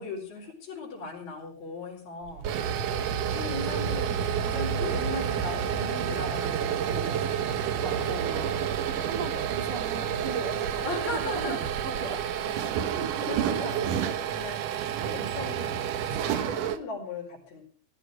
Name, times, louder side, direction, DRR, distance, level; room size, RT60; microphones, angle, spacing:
voice 1, 0.0-2.7 3.0-7.7 8.1-8.2 9.3-9.6 10.8-11.6 13.2-14.6 15.1-15.8 16.1-17.6, left 3 dB, 35° left, -3 dB, 5.4 m, -38 dB
sound 1, 2.2-16.8, right 9 dB, 85° right, 1.8 m, -29 dB
voice 2, 7.7-8.7 9.0-11.6 11.8-13.7 15.0-15.2, right 3 dB, 40° right, 3 dB, 3.5 m, -38 dB
17.5 x 14.0 x 4.9 m, 0.42 s
omnidirectional pair, 5.4 m